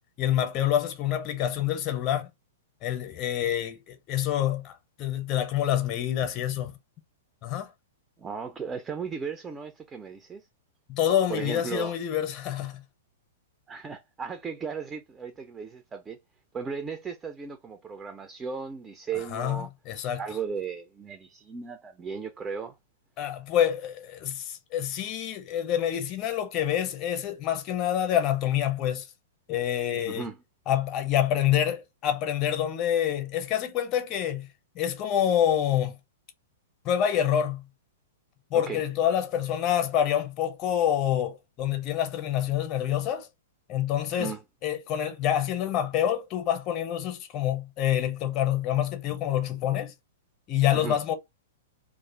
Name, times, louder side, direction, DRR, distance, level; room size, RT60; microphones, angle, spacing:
voice 1, 0.2-2.3 2.8-4.7 5.0-6.7 7.4-7.7 10.9-12.8 19.3-20.2 23.2-29.1 29.5-30.2 30.7-34.5 34.7-35.9 36.8-37.6 38.5-43.3 43.7-44.4 44.6-49.9 50.5-51.1, left 10 dB, 30° left, 0.6 m, -27 dB
voice 2, 8.2-10.4 11.3-11.9 13.7-16.2 16.5-19.7 20.2-22.7 30.1-30.4 38.5-38.8 44.2-44.4 50.7-51.0, right 6 dB, 15° right, 0.4 m, -36 dB
2.4 x 2.3 x 3.2 m
figure-of-eight pair, 105°, 0 cm